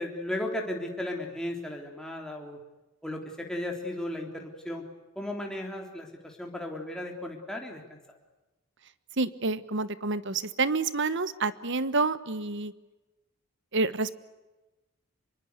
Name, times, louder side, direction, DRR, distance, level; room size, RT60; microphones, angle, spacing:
voice 1, 0.0-2.6 3.0-4.8 5.2-8.0, left 1 dB, 5° left, 1 dB, 3.6 m, -35 dB
voice 2, 9.2-12.7 13.7-14.1, right 3 dB, 55° right, 15 dB, 1.3 m, -28 dB
26.0 x 23.5 x 8.3 m, 1.1 s
head